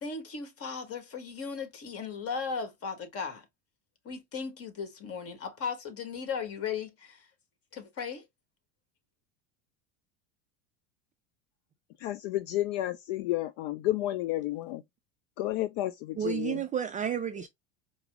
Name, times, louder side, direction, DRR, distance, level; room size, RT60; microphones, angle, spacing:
voice 1, 0.0-3.5 4.0-7.3 7.7-8.3, left 6 dB, 40° left, 1.4 m, -37 dB
voice 2, 12.0-14.8 15.4-16.6, left 15 dB, 60° left, 0.5 m, -31 dB
voice 3, 16.2-17.5, right 8 dB, 20° right, 0.3 m, -31 dB
4.7 x 2.0 x 3.4 m
hypercardioid pair, 100°, 38 cm